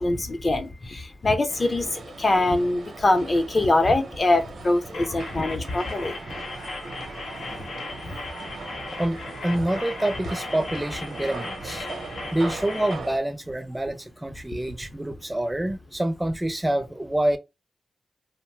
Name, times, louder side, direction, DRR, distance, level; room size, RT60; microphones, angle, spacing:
voice 1, 0.0-1.9 2.2-6.1, left 2 dB, 40° left, 0.6 m, -23 dB
sound 1, 1.5-13.2, right 3 dB, 70° right, 0.7 m, -39 dB
sound 2, 4.9-12.9, left 3 dB, 80° left, 0.6 m, -38 dB
voice 2, 9.0-11.9 12.3-17.4, right 1 dB, 15° right, 0.5 m, -27 dB
2.6 x 2.0 x 3.2 m
cardioid pair, 65°, 0 cm